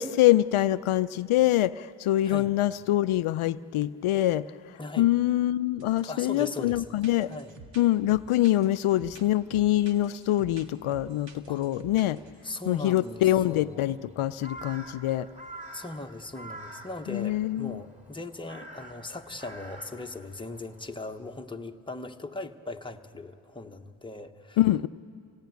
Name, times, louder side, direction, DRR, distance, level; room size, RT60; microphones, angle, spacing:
voice 1, 0.0-4.5 5.0-7.3 7.8-12.2 12.7-15.3 17.1-17.8 24.6-24.9, left 14 dB, 75° left, 0.6 m, -25 dB
voice 2, 4.8-5.1 6.0-6.9 7.2-7.6 11.5-11.6 12.4-13.9 15.7-24.6, left 2 dB, 10° left, 1.1 m, -39 dB
sound 1, 5.8-6.2 6.4-12.7 13.0-13.6, right 4 dB, 60° right, 1.7 m, -50 dB
Crow, 12.5-21.0, right 1 dB, 15° right, 3.8 m, -47 dB
26.0 x 17.5 x 9.3 m
cardioid pair, 70°, 50 cm